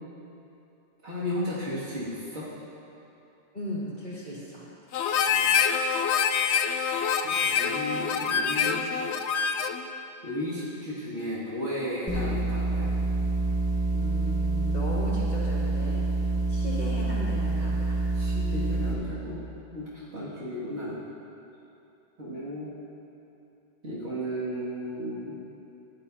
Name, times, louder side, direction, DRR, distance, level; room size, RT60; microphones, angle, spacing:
voice 1, 1.0-2.5 5.3-5.5 7.2-8.9 10.2-12.9 18.1-19.4 19.7-21.0 22.2-22.8 23.8-25.4, equal, 90° right, -10 dB, 2.7 m, -34 dB
voice 2, 3.5-4.7 13.9-16.1 16.5-18.0, equal, 55° left, -9 dB, 2.9 m, -36 dB
Harmonica, 4.9-9.8, left 7 dB, 80° left, 0.8 m, -26 dB
sound 1, 12.1-18.9, right 2 dB, 20° right, 1.4 m, -27 dB
15.0 x 11.5 x 2.8 m, 2.9 s
omnidirectional pair, 1.1 m